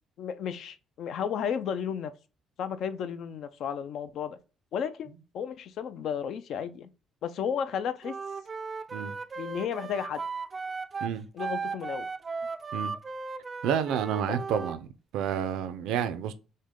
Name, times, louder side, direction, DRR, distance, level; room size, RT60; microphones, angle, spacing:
voice 1, 0.2-2.1 2.6-4.4 4.7-6.9 7.2-8.1 9.4-10.2 11.3-12.1 14.3-14.4, left 8 dB, 60° left, 0.5 m, -33 dB
Wind instrument woodwind instrument, 8.0-14.8, right 4 dB, 25° right, 0.4 m, -36 dB
voice 2, 13.6-14.9 15.1-16.3, right 8 dB, 85° right, 0.5 m, -29 dB
6.4 x 2.2 x 3.6 m
cardioid pair, 130°, 0 cm